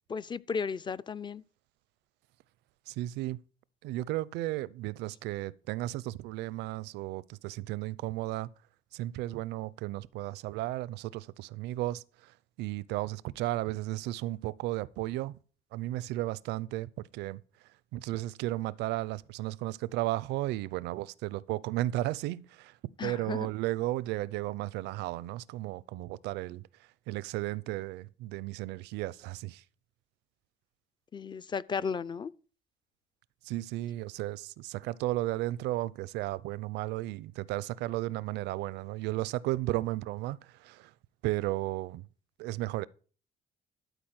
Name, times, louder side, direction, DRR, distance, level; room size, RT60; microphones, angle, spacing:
voice 1, 0.1-1.4 23.0-23.5 31.1-32.3, left 6 dB, 25° left, 0.5 m, -34 dB
voice 2, 2.9-3.4 3.8-8.5 8.9-15.4 15.7-17.4 17.9-22.8 23.0-26.6 27.1-29.6 33.4-40.9 41.2-42.0 42.4-42.9, right 17 dB, 90° right, 0.5 m, -34 dB
12.5 x 4.9 x 7.9 m
cardioid pair, 110°, 17 cm